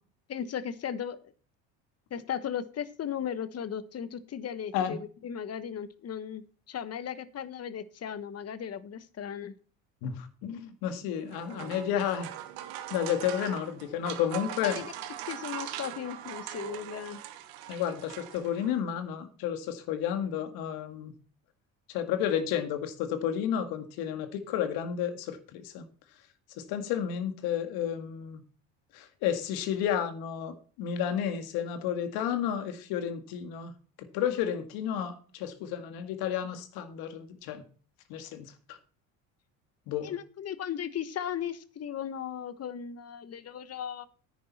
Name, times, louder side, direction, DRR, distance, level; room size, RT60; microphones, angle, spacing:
voice 1, 0.3-1.3 2.1-9.5 14.6-14.9 15.2-17.2 40.0-44.1, left 8 dB, 40° left, 15 dB, 1.2 m, -36 dB
voice 2, 10.0-12.3 12.9-14.8 17.7-21.1 21.9-25.8 26.6-28.4 28.9-33.7 34.0-37.6 38.1-38.8 39.9-40.1, left 9 dB, 70° left, 9 dB, 2.0 m, -32 dB
sound 1, 11.2-18.8, right 12 dB, 75° right, 1.4 m, -41 dB
10.5 x 9.4 x 4.2 m, 0.40 s
supercardioid pair, 80°, 38 cm